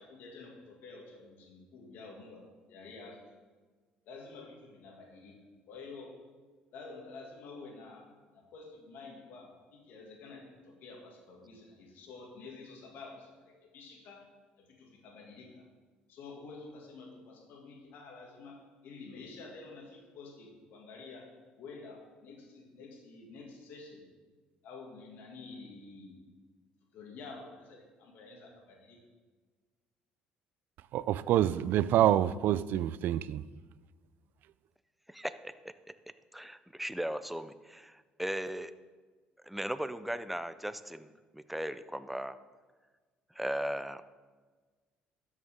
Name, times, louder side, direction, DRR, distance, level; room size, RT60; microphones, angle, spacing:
voice 1, 0.0-3.3 4.1-5.4 5.7-6.1 6.7-8.1 8.3-14.2 14.6-15.7 16.1-21.3 21.6-24.1 24.6-26.3 26.9-29.0, left 3 dB, 70° left, 2.2 m, -49 dB
voice 2, 30.9-33.4, right 12 dB, 65° right, 0.3 m, -27 dB
voice 3, 35.1-35.9 36.3-38.7 39.4-42.4 43.3-44.0, equal, 5° right, 0.5 m, -37 dB
12.5 x 6.4 x 3.7 m
supercardioid pair, 80°, 4 cm